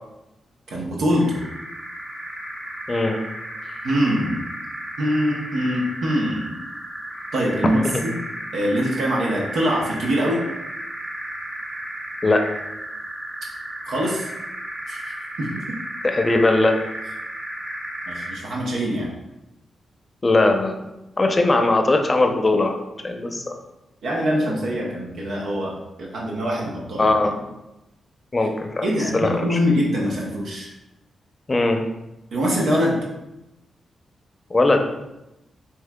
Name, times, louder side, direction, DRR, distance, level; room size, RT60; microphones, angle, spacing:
voice 1, 0.7-1.4 3.6-4.4 5.0-6.6 7.3-8.2 8.5-10.4 13.9-14.3 14.9-15.8 18.1-19.1 24.0-27.1 28.4-28.5 28.8-30.7 32.3-33.0, equal, 75° right, -3 dB, 0.7 m, -23 dB
sound 1, 1.1-18.5, right 1 dB, 25° right, 1.4 m, -34 dB
voice 2, 2.9-3.2 7.9-8.0 12.2-12.4 16.0-16.8 20.2-20.8 21.2-22.8 23.0-23.5 27.0-27.4 28.3-29.6 31.5-31.8 34.5-34.8, left 2 dB, 35° left, 5 dB, 0.6 m, -19 dB
5.5 x 3.0 x 2.3 m, 0.95 s
supercardioid pair, 45°, 0 cm